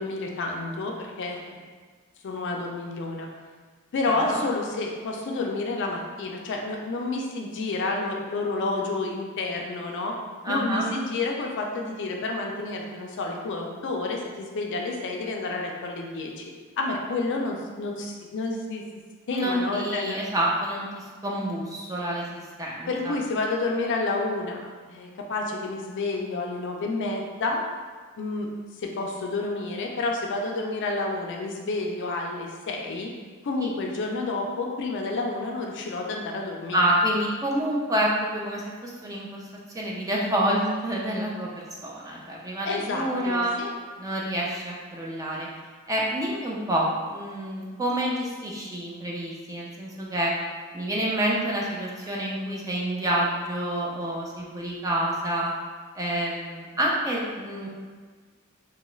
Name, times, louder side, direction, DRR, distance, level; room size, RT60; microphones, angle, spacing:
voice 1, 0.0-1.6 2.2-3.3 3.9-10.2 10.5-16.4 16.8-18.8 19.3-20.2 22.9-27.6 28.2-28.5 28.8-33.1 33.4-36.8 42.6-43.7, left 3 dB, 55° left, 1 dB, 0.4 m, -29 dB
voice 2, 4.1-4.4 10.4-10.9 19.3-22.3 22.6-23.1 33.6-33.7 36.7-39.4 39.7-43.6 44.0-45.5 45.9-50.3 50.7-55.5 56.0-57.7, right 1 dB, 15° right, -4 dB, 0.4 m, -28 dB
2.9 x 2.3 x 3.0 m, 1.5 s
head